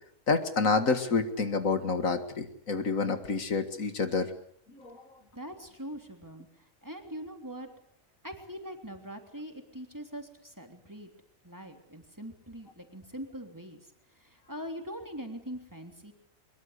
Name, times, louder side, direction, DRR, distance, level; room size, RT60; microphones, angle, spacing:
voice 1, 0.3-4.3 4.7-5.0, left 4 dB, 75° left, 8 dB, 2.3 m, -28 dB
voice 2, 5.3-7.7 8.2-11.1 11.4-13.8 14.1-16.1, equal, 15° right, 4 dB, 3.3 m, -42 dB
23.0 x 22.0 x 8.2 m, 0.67 s
omnidirectional pair, 1.4 m